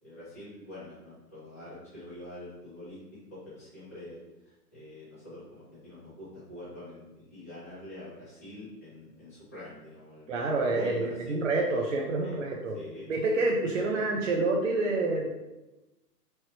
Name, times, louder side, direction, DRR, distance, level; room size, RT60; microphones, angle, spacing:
voice 1, 0.0-11.4 12.2-12.4 12.7-13.1 13.6-14.1, left 1 dB, 10° left, -14 dB, 0.7 m, -45 dB
voice 2, 10.3-12.8 13.1-15.3, right 2 dB, 50° right, -1 dB, 0.5 m, -28 dB
4.3 x 3.2 x 2.8 m, 1.0 s
hypercardioid pair, 180°, 49 cm